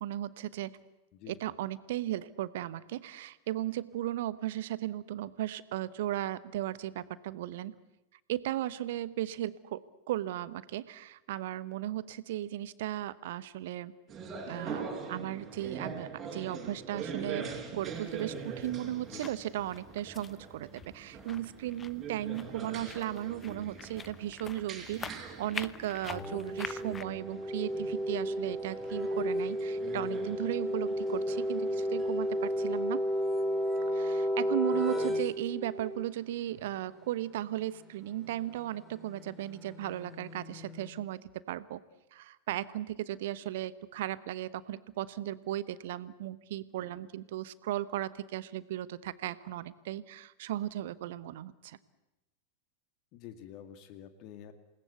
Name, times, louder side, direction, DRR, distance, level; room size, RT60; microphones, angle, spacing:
voice 1, 0.0-0.8 1.3-7.7 8.3-13.9 14.5-33.0 33.9-41.8 42.1-51.8, right 13 dB, 55° right, 17 dB, 1.0 m, -36 dB
sound 1, 14.1-32.8, right 5 dB, 25° right, 5.7 m, -44 dB
sound 2, 17.8-27.0, left 6 dB, 20° left, 0.9 m, -46 dB
sound 3, 26.1-36.1 38.2-40.9, equal, 5° right, 2.7 m, -33 dB
voice 2, 53.1-54.5, left 10 dB, 40° left, 8 dB, 2.0 m, -48 dB
27.5 x 19.0 x 8.3 m, 0.97 s
figure-of-eight pair, 90°, 0 cm